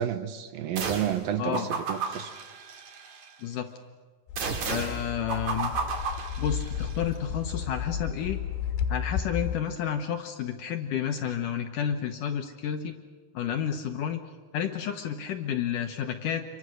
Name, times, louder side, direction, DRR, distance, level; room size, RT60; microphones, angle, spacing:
voice 1, 0.0-2.3, right 10 dB, 75° right, 9 dB, 2.4 m, -30 dB
sound 1, 0.8-1.2 1.5-3.3 4.4-7.0, right 4 dB, 50° right, 3.3 m, -33 dB
voice 2, 1.4-1.7 3.4-3.7 4.6-5.7 6.4-8.4 8.9-12.9 13.3-14.2 14.5-16.4, left 8 dB, 70° left, 6 dB, 2.1 m, -30 dB
sound 2, 4.3-9.6, left 8 dB, 90° left, 3.4 m, -33 dB
28.5 x 24.0 x 6.4 m, 1.5 s
omnidirectional pair, 4.8 m